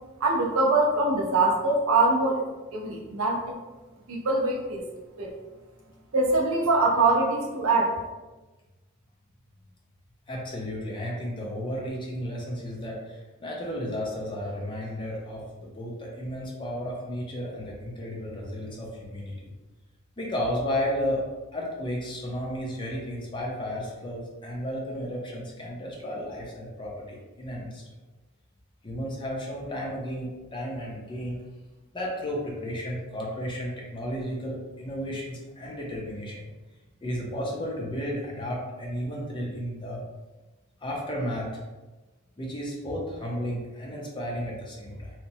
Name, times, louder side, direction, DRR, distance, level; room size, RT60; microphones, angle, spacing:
voice 1, 0.2-2.4 2.7-3.5 4.1-4.8 5.2-5.3 6.1-8.0, right 2 dB, 75° right, -1 dB, 0.6 m, -23 dB
voice 2, 10.3-19.5 20.2-21.3 21.5-27.8 28.8-31.4 31.9-36.4 37.0-40.0 40.8-41.6 42.4-45.1, equal, 25° left, -2 dB, 0.5 m, -33 dB
2.8 x 2.1 x 2.7 m, 1.2 s
head